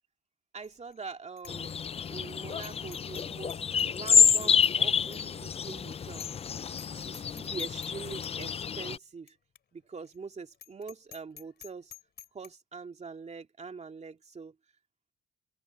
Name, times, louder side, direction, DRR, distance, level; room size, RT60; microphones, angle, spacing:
voice 1, 0.5-1.7 2.1-6.3 6.8-9.4 9.7-11.9 12.3-14.6, right 5 dB, 35° right, 2.6 m, -44 dB
Bicycle bell, 0.6-1.0 1.4-1.5 1.9-2.0 2.6-3.2 3.5-4.8 5.1-5.2 5.7-5.8 6.2-6.5 6.7-6.9 7.1-7.9 8.4-8.5 9.3-9.4 9.6-9.7 10.0-10.2 10.5-12.5, left 9 dB, 55° left, 3.6 m, -49 dB
sound 1, 1.5-9.0, left 7 dB, 30° left, 0.4 m, -28 dB
open air
cardioid pair, 90°, 20 cm